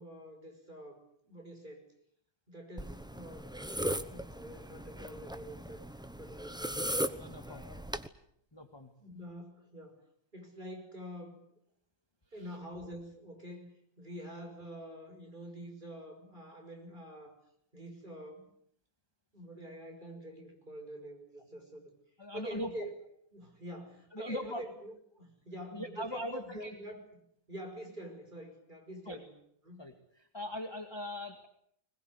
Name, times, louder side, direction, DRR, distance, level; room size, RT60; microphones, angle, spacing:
voice 1, 0.0-1.9 2.5-3.5 3.9-5.8 6.2-6.8 7.4-7.8 9.0-10.0 10.3-11.4 12.3-17.3 17.7-18.4 19.3-21.9 22.3-22.9 23.3-27.0 27.5-29.3 29.7-29.9, equal, 25° right, 4 dB, 5.9 m, -46 dB
sound 1, 2.8-8.1, right 1 dB, 5° right, 0.4 m, -38 dB
voice 2, 7.1-7.6 8.5-8.9 12.4-12.5 22.2-22.7 24.1-24.6 25.7-26.8 29.1-29.2 29.8-31.5, left 1 dB, 15° left, 5 dB, 1.9 m, -40 dB
21.0 x 21.0 x 9.8 m, 0.70 s
omnidirectional pair, 2.1 m